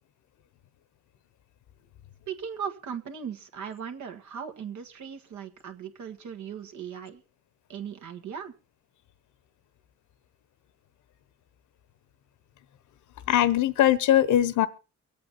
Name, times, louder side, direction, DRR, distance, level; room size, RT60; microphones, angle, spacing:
voice 1, 2.3-7.2 7.7-8.5, right 7 dB, 70° right, 6 dB, 1.8 m, -38 dB
voice 2, 13.3-14.7, left 12 dB, 75° left, 16 dB, 1.1 m, -21 dB
23.5 x 8.5 x 4.1 m, 0.32 s
cardioid pair, 90°, 30 cm